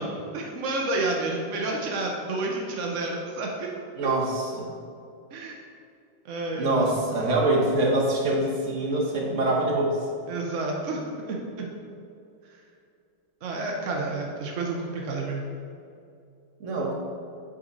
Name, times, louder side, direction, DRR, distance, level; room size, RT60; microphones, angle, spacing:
voice 1, 0.0-3.7 5.3-5.6 6.2-6.9 10.3-11.7 13.4-15.5, right 2 dB, 75° right, 0 dB, 0.7 m, -30 dB
voice 2, 3.9-4.7 6.5-10.0 16.6-16.9, right 2 dB, 45° right, -3 dB, 1.2 m, -24 dB
7.7 x 4.2 x 3.9 m, 2.5 s
omnidirectional pair, 2.2 m